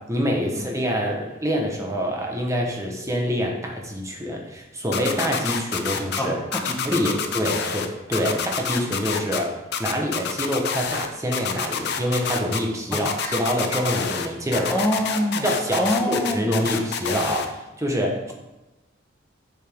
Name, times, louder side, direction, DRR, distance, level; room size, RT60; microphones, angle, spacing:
voice 1, 0.1-6.4 6.8-9.5 9.8-14.8 15.4-18.3, equal, 15° right, 0 dB, 1.2 m, -26 dB
sound 1, 4.9-6.2 6.5-7.9 8.1-9.4 9.7-11.1 11.3-12.6 12.9-14.3 14.5-17.5, left 7 dB, 55° left, 0.7 m, -27 dB
voice 2, 6.2-7.2 12.9-13.3 14.7-16.6, left 1 dB, 10° left, 0 dB, 1.2 m, -26 dB
7.1 x 6.0 x 4.6 m, 1.0 s
head